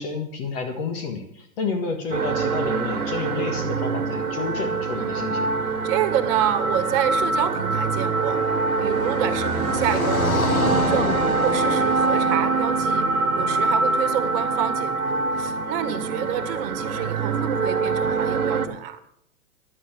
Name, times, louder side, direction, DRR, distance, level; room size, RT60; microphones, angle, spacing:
voice 1, 0.0-5.5, left 4 dB, 45° left, 6 dB, 1.7 m, -30 dB
sound 1, 2.1-18.7, right 4 dB, 90° right, 1.3 m, -24 dB
voice 2, 4.9-5.4 5.8-8.4 8.8-11.2 11.4-13.0 13.3-19.0, right 10 dB, 40° right, 11 dB, 1.6 m, -28 dB
Car passing by, 7.2-14.5, left 4 dB, 90° left, 1.5 m, -29 dB
11.5 x 8.5 x 7.3 m, 0.73 s
hypercardioid pair, 130°, 41 cm